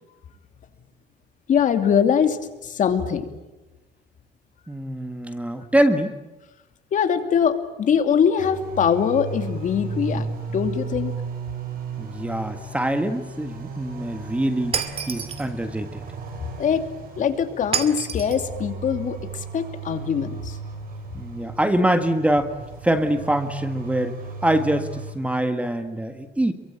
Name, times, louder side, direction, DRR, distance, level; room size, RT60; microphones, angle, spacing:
voice 1, 1.5-3.3 6.9-11.1 16.6-16.9 17.1-20.6, left 7 dB, 45° left, 7 dB, 2.8 m, -22 dB
voice 2, 4.7-6.2 12.0-16.0 21.1-22.5 22.8-26.5, right 1 dB, 5° right, 8 dB, 1.6 m, -24 dB
sound 1, 8.4-25.1, right 4 dB, 55° right, 7.7 m, -35 dB
Shatter, 14.7-15.5 17.7-18.5, right 7 dB, 35° right, 2.4 m, -28 dB
28.0 x 23.5 x 8.9 m, 1.1 s
cardioid pair, 145°, 18 cm